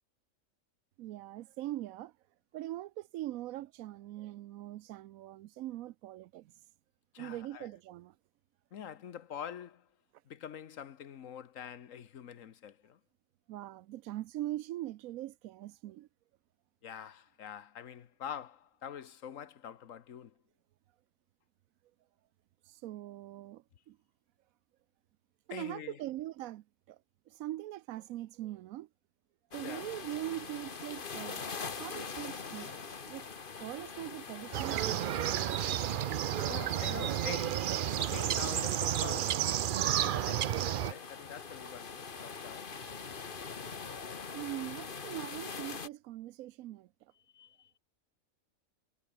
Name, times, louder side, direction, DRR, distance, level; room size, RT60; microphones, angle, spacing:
voice 1, 1.0-2.1 2.5-6.5 7.2-8.1 13.5-16.1 22.7-24.0 25.5-27.0 27.3-28.9 29.5-31.4 31.8-33.3 33.6-35.5 44.3-46.9, right 15 dB, 90° right, 1.0 m, -42 dB
voice 2, 7.1-7.7 8.7-9.9 10.2-13.0 16.8-20.3 25.5-26.0 29.6-29.9 36.5-37.7 38.0-39.5 39.9-42.8 47.3-47.8, left 8 dB, 75° left, 1.4 m, -45 dB
sound 1, 29.5-45.9, left 5 dB, 40° left, 1.5 m, -44 dB
sound 2, 34.5-40.9, right 11 dB, 65° right, 0.5 m, -31 dB
omnidirectional pair, 1.4 m